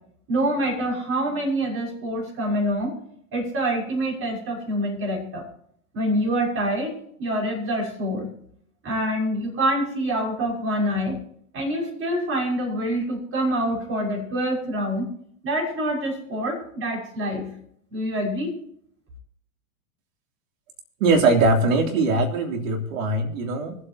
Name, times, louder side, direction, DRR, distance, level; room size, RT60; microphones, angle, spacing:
voice 1, 0.3-2.9 3.3-5.5 5.9-6.9 7.2-8.3 8.8-11.2 11.5-15.1 15.4-17.5 17.9-18.5, right 1 dB, 30° right, -1 dB, 6.1 m, -26 dB
voice 2, 21.0-23.8, right 3 dB, 65° right, 3 dB, 3.3 m, -21 dB
25.0 x 8.4 x 2.9 m, 0.65 s
hypercardioid pair, 115°, 43 cm